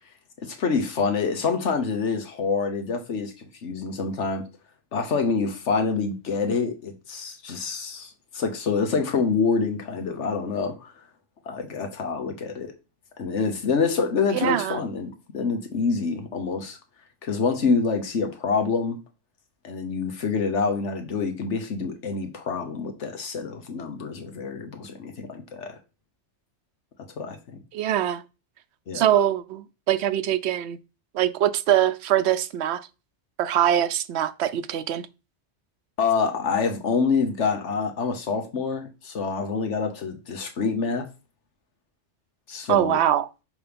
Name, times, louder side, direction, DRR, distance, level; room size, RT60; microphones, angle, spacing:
voice 1, 0.4-4.4 4.9-10.9 11.4-12.7 13.2-16.8 17.2-19.0 19.6-25.7 27.2-27.4 28.9-29.0 36.0-41.1 42.5-43.0, left 5 dB, 90° left, 1.4 m, -26 dB
voice 2, 14.3-14.8 27.7-28.2 28.9-30.8 31.1-32.9 33.4-35.0 42.7-43.3, right 11 dB, 75° right, 0.8 m, -23 dB
6.1 x 3.2 x 5.2 m
omnidirectional pair, 1.2 m